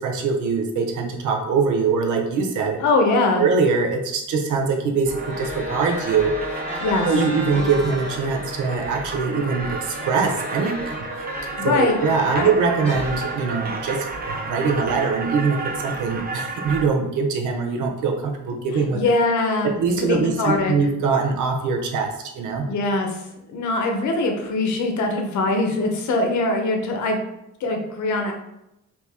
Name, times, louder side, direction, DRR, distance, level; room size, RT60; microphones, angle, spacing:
voice 1, 0.0-2.8 3.4-6.6 7.1-11.2 11.6-19.0 19.6-22.7, right 5 dB, 80° right, 4 dB, 0.7 m, -23 dB
voice 2, 2.8-3.4 6.8-7.1 11.6-12.0 12.3-12.5 18.9-20.7 22.6-23.2 23.5-27.2 27.6-28.3, left 2 dB, 70° left, 3 dB, 0.8 m, -22 dB
sound 1, 5.1-12.5 12.8-15.2, left 1 dB, 20° left, 1.3 m, -35 dB
sound 2, 5.1-16.9, right 3 dB, 30° right, 0.5 m, -32 dB
2.9 x 2.7 x 3.4 m, 0.86 s
cardioid pair, 90°, 30 cm